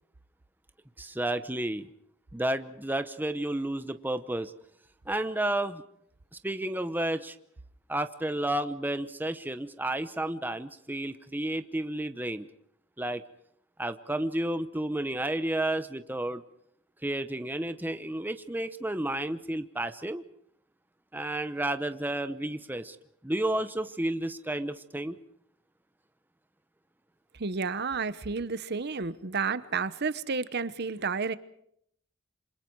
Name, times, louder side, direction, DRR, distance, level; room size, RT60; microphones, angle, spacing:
voice 1, 1.0-1.9 2.3-4.5 5.1-5.8 6.4-7.4 7.9-12.5 13.0-13.2 13.8-16.4 17.0-20.2 21.1-23.0 23.2-25.2, right 1 dB, 10° right, 0.9 m, -31 dB
voice 2, 27.3-31.4, right 4 dB, 50° right, 1.0 m, -31 dB
28.0 x 27.0 x 4.7 m
head